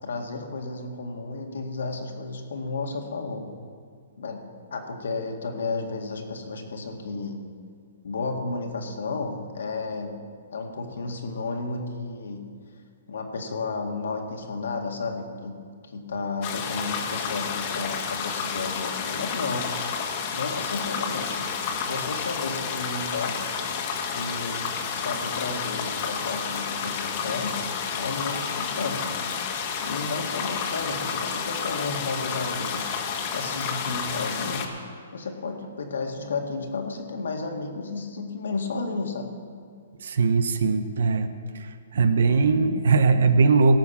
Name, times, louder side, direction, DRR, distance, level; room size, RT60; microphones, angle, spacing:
voice 1, 0.0-3.5 4.2-4.4 4.7-7.4 8.0-10.2 10.5-12.4 13.1-19.7 20.3-21.5 21.8-23.4 23.7-27.6 28.0-29.1 29.8-32.9 33.3-39.3, left 3 dB, 80° left, 3 dB, 1.9 m, -32 dB
sound 1, 16.4-34.7, left 6 dB, 40° left, 1.4 m, -30 dB
voice 2, 40.0-41.3 41.6-43.8, right 4 dB, 75° right, 10 dB, 1.0 m, -20 dB
17.0 x 6.1 x 7.2 m, 2.2 s
hypercardioid pair, 145°, 0 cm